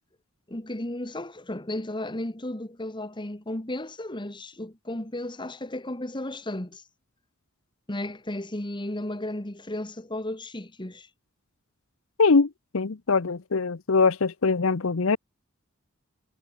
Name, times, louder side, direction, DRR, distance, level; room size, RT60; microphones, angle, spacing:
voice 1, 0.5-6.8 7.9-11.1, left 1 dB, 20° left, 1.8 m, -34 dB
voice 2, 12.2-15.2, left 4 dB, 75° left, 0.8 m, -22 dB
head